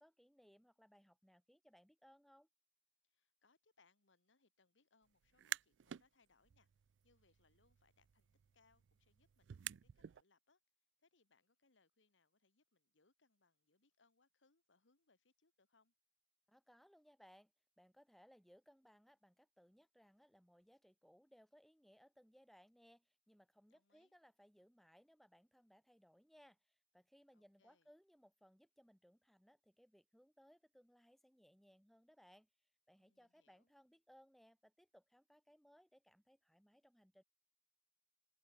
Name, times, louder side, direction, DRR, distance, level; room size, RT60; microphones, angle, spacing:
voice 1, 0.0-2.5 16.5-32.5 32.9-37.2, equal, ahead, 1.6 m, -68 dB
voice 2, 3.0-6.7 7.0-10.6 11.0-15.9 23.7-24.1 27.3-27.9 33.0-33.7, left 4 dB, 80° left, 1.8 m, -77 dB
sound 1, 5.2-6.0 6.4-10.2, right 11 dB, 70° right, 0.4 m, -50 dB
head